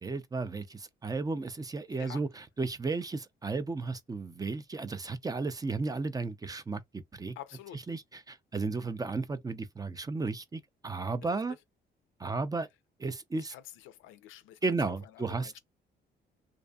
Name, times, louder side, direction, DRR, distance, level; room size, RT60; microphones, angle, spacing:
voice 1, 0.0-7.3 7.9-11.6 12.2-12.7 13.0-13.5 14.6-15.6, right 3 dB, 20° right, 0.4 m, -34 dB
voice 2, 1.9-2.2 7.4-7.9 11.2-11.4 13.4-14.7 15.0-15.6, left 12 dB, 85° left, 0.4 m, -48 dB
2.5 x 2.5 x 2.3 m
cardioid pair, 90°, 20 cm